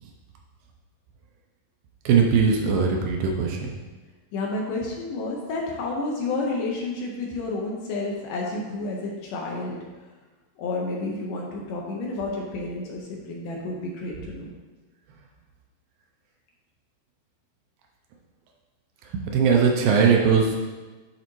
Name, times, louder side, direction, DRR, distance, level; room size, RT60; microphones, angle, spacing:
voice 1, 2.1-3.7 19.0-20.6, right 6 dB, 80° right, 1 dB, 2.2 m, -20 dB
voice 2, 4.3-9.8 10.6-14.5, left 2 dB, 75° left, -1 dB, 2.2 m, -30 dB
10.5 x 4.0 x 3.1 m, 1.3 s
omnidirectional pair, 4.2 m